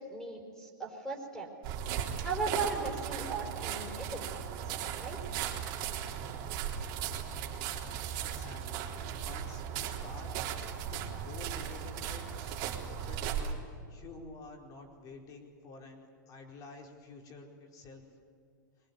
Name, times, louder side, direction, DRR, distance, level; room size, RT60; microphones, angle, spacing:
voice 1, 0.1-1.5 2.2-5.2, right 4 dB, 5° left, 2 dB, 5.0 m, -37 dB
sound 1, 1.6-13.5, right 8 dB, 45° right, 3.8 m, -37 dB
voice 2, 8.2-10.3 10.9-12.6 13.0-18.0, left 3 dB, 35° left, 3 dB, 4.7 m, -50 dB
22.5 x 20.0 x 9.7 m, 2.3 s
hypercardioid pair, 135°, 11 cm